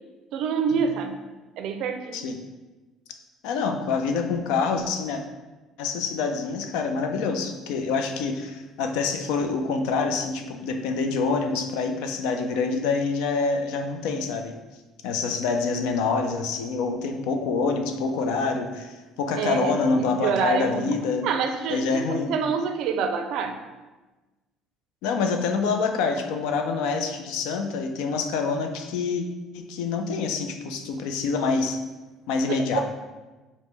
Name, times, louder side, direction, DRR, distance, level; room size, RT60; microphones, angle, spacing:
voice 1, 0.3-1.2 1.6-2.2 19.4-20.9 21.2-23.6 32.5-32.6, right 6 dB, 70° right, 6 dB, 0.4 m, -27 dB
voice 2, 3.4-5.2 5.8-14.5 15.0-21.3 21.7-22.3 25.0-29.2 29.5-31.8 32.3-32.8, left 4 dB, 85° left, 5 dB, 0.4 m, -26 dB
5.0 x 2.1 x 3.3 m, 1.2 s
cardioid pair, 110°, 0 cm